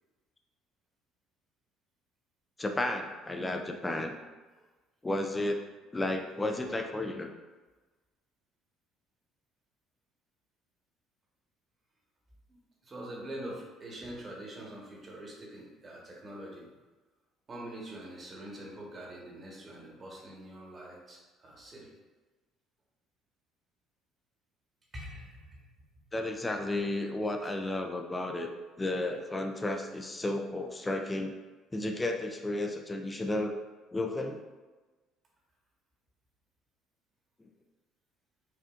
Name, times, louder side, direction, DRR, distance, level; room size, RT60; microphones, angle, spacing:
voice 1, 2.6-4.2 5.0-5.6 5.9-7.3 26.1-28.5 28.8-31.4 31.7-33.6 33.9-34.4, left 1 dB, 20° left, 4 dB, 0.5 m, -32 dB
voice 2, 12.5-16.7 17.5-21.9 24.9-25.6 26.7-26.8 27.4-27.5, right 1 dB, 35° right, -3 dB, 1.2 m, -44 dB
4.9 x 2.5 x 2.5 m, 1.2 s
supercardioid pair, 75°, 0 cm